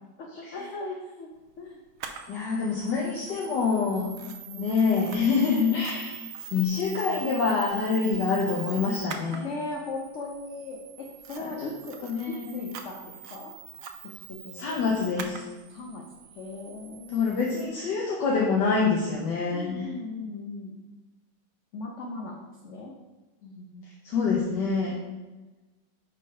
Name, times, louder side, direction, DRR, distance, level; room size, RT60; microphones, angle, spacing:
voice 1, 0.2-1.3 1.6-1.8 4.3-4.7 9.3-12.0 12.3-13.5 14.3-14.8 15.7-17.3 19.5-20.8 21.7-22.9 23.4-23.8, left 2 dB, 60° left, -1 dB, 0.8 m, -38 dB
Camera, 2.0-17.7, right 8 dB, 70° right, 0.8 m, -43 dB
voice 2, 2.3-4.1 4.6-6.2 6.5-9.5 11.4-11.7 12.0-12.6 14.5-15.4 17.1-19.9 24.0-24.9, left 5 dB, 75° left, -3 dB, 1.5 m, -26 dB
5.3 x 4.0 x 5.4 m, 1.2 s
omnidirectional pair, 1.9 m